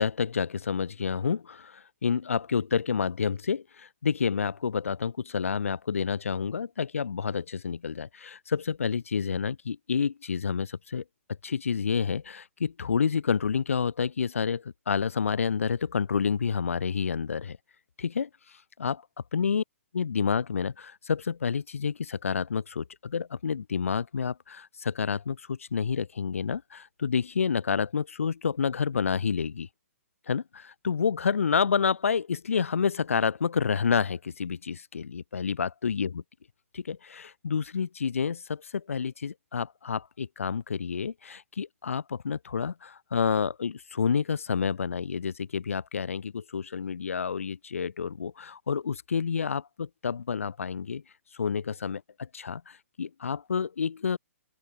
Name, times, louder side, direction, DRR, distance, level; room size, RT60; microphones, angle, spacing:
voice 1, 0.0-11.0 11.4-17.6 18.0-18.3 18.8-19.0 19.3-19.6 19.9-29.7 30.3-36.2 36.7-51.0 51.3-54.2, left 6 dB, 65° left, 1.3 m, -29 dB
open air
figure-of-eight pair, 125°, 8 cm